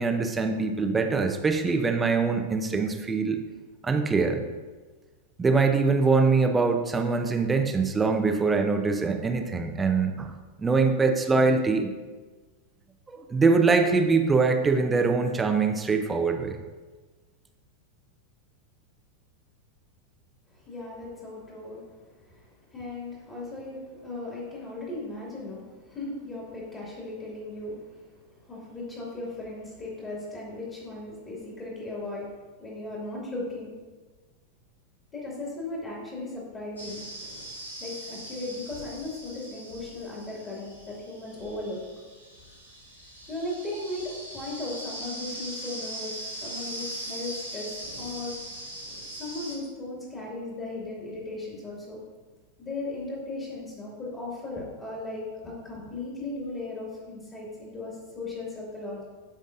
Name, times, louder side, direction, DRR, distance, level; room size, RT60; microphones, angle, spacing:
voice 1, 0.0-3.4 3.8-4.4 5.4-10.3 10.6-11.9 13.1-16.6, right 4 dB, 15° right, 5 dB, 0.8 m, -23 dB
voice 2, 20.5-21.8 22.2-32.3 32.6-33.7 35.1-37.0 37.8-41.8 43.3-48.3 49.1-52.0 52.6-59.0, left 2 dB, 25° left, -5 dB, 2.4 m, -37 dB
sound 1, 36.8-49.6, right 1 dB, 80° left, 2.0 m, -40 dB
13.0 x 5.1 x 2.6 m, 1.3 s
figure-of-eight pair, 90°, 0 cm